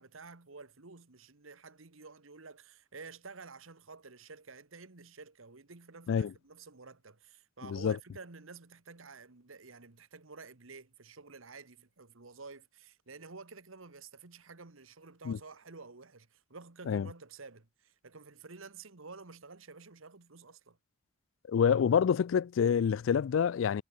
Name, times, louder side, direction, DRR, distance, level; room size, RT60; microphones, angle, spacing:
voice 1, 0.0-20.8, right 4 dB, 80° right, 1.5 m, -51 dB
voice 2, 7.6-8.0 15.3-15.4 16.9-17.1 21.5-23.8, left 7 dB, 65° left, 0.3 m, -27 dB
head